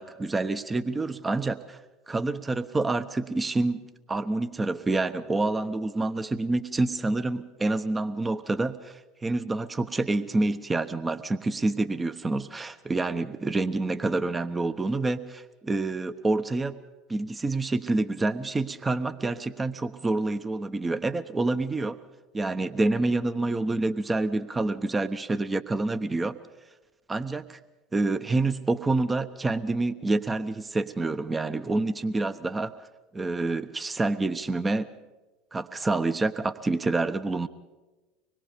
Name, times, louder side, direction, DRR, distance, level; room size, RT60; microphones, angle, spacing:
voice 1, 0.0-1.8 2.1-3.8 4.1-16.8 17.1-22.0 22.3-26.3 27.1-27.6 27.9-32.7 33.1-34.9 35.5-37.5, right 2 dB, 15° right, 11 dB, 1.1 m, -27 dB
25.0 x 21.0 x 5.2 m, 1.1 s
figure-of-eight pair, 75°, 0 cm